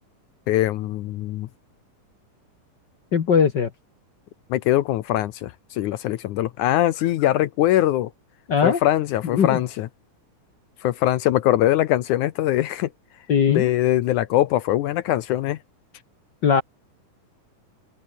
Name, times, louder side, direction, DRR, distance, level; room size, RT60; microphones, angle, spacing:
voice 1, 0.5-1.5 4.5-8.1 8.6-9.9 10.8-12.9 13.5-15.6, left 14 dB, 75° left, 2.2 m, -22 dB
voice 2, 3.1-3.7 8.5-8.8 9.3-9.6 13.3-13.7 16.4-16.6, left 6 dB, 55° left, 1.3 m, -19 dB
open air
omnidirectional pair, 3.7 m